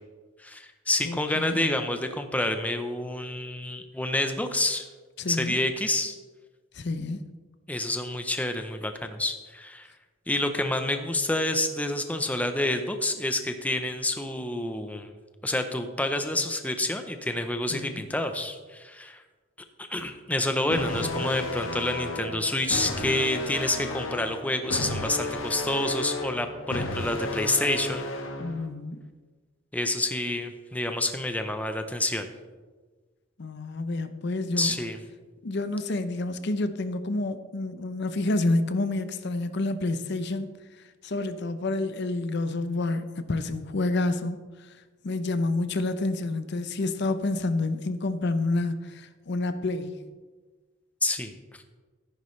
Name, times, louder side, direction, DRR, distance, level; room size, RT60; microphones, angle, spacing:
voice 1, 0.4-4.8 5.2-6.2 7.7-9.9 10.3-15.1 15.4-19.2 19.8-28.1 29.7-32.3 34.6-35.0 51.0-51.3, left 1 dB, 5° left, 7 dB, 0.7 m, -28 dB
voice 2, 1.0-1.7 5.2-5.6 6.7-7.2 17.7-18.0 20.7-21.2 28.4-29.1 33.4-34.7 35.4-40.5 41.0-44.7 45.0-50.0, left 2 dB, 55° left, 11 dB, 0.6 m, -29 dB
sound 1, 20.7-28.7, left 2 dB, 75° left, 1.3 m, -33 dB
14.0 x 10.5 x 3.2 m, 1.4 s
head